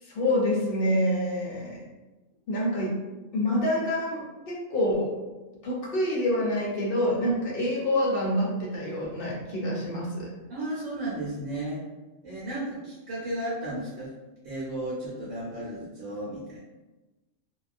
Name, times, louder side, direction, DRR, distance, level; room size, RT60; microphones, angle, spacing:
voice 1, 0.0-1.8 2.5-2.9 3.3-5.1 5.6-10.3, left 1 dB, 60° left, -4 dB, 0.6 m, -27 dB
voice 2, 10.5-11.8 12.2-14.1 14.4-16.6, right 1 dB, 70° right, -9 dB, 1.0 m, -34 dB
2.3 x 2.2 x 2.4 m, 1.1 s
omnidirectional pair, 1.4 m